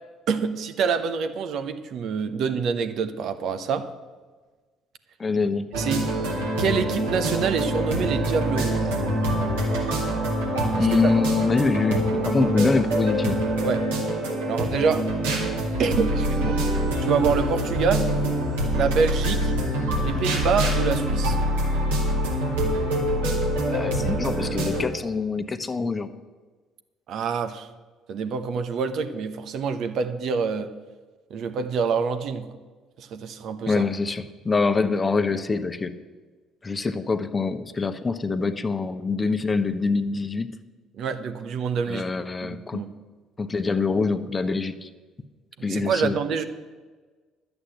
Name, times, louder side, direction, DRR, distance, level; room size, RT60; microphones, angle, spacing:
voice 1, 0.3-3.9 5.8-6.0 6.6-8.9 10.8-11.1 13.6-13.8 14.5-15.1 15.8-16.6 17.0-18.1 18.7-19.5 20.0-21.4 27.1-27.7 28.1-30.7 31.3-32.5 33.0-33.8 41.0-42.1 42.4-42.9 45.6-46.4, right 5 dB, 60° right, 9 dB, 0.9 m, -26 dB
voice 2, 5.2-5.7 10.8-13.4 23.7-26.1 33.7-36.0 36.6-40.5 41.9-42.8 43.4-44.9 45.6-46.2, left 4 dB, 25° left, 10 dB, 0.9 m, -25 dB
sound 1, 5.7-24.9, right 1 dB, 80° right, 2.4 m, -25 dB
11.5 x 8.1 x 8.1 m, 1.3 s
hypercardioid pair, 55°, 0 cm